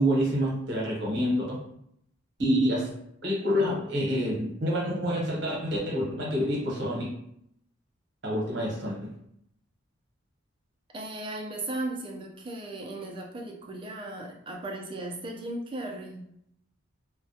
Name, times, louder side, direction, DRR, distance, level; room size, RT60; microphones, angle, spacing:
voice 1, 0.0-1.6 2.4-2.9 3.2-7.1 8.2-8.9, equal, 55° right, -3 dB, 0.8 m, -27 dB
voice 2, 10.9-16.2, right 2 dB, 25° right, 0 dB, 0.3 m, -36 dB
2.2 x 2.1 x 2.7 m, 0.72 s
head